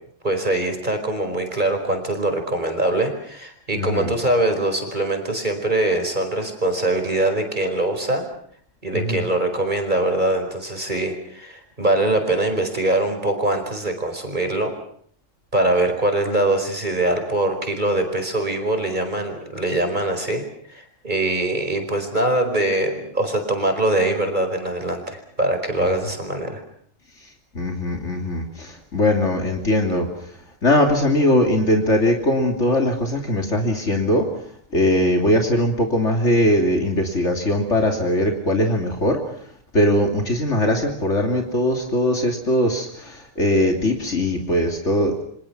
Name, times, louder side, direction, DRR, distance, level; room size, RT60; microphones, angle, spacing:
voice 1, 0.2-8.2 8.8-14.7 15.5-20.4 20.7-26.6, right 2 dB, 35° right, 6 dB, 5.0 m, -23 dB
voice 2, 3.7-4.1 8.9-9.3 25.8-25.9 27.2-34.4 34.7-39.5 39.7-45.2, left 1 dB, 65° left, 2 dB, 3.2 m, -21 dB
28.5 x 25.5 x 6.0 m, 0.63 s
omnidirectional pair, 1.3 m